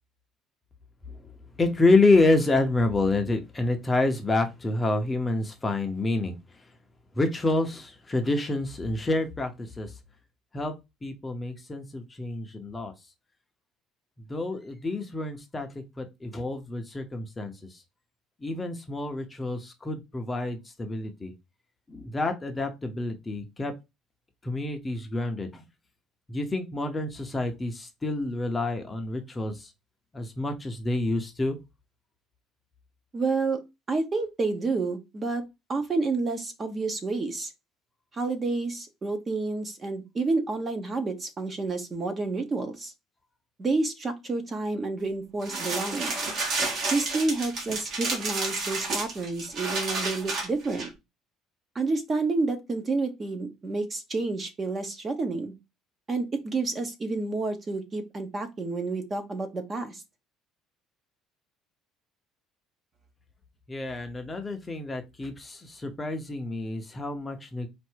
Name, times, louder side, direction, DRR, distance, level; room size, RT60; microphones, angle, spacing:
voice 1, 1.6-6.4 7.2-9.9 10.5-10.7 11.0-12.9 14.3-15.7 16.0-17.5 18.4-21.3 21.9-23.7 24.4-25.6 26.3-29.7 30.1-31.6 63.7-67.7, left 2 dB, 15° left, 5 dB, 0.7 m, -28 dB
voice 2, 33.1-33.6 33.9-35.4 35.7-37.5 38.1-42.9 43.6-46.2 46.9-50.9 51.7-55.5 56.1-60.0, right 3 dB, 25° right, 7 dB, 0.9 m, -29 dB
sound 1, 45.4-50.9, right 3 dB, 45° right, 1.6 m, -31 dB
4.5 x 2.5 x 4.5 m, 0.23 s
cardioid pair, 145°, 0 cm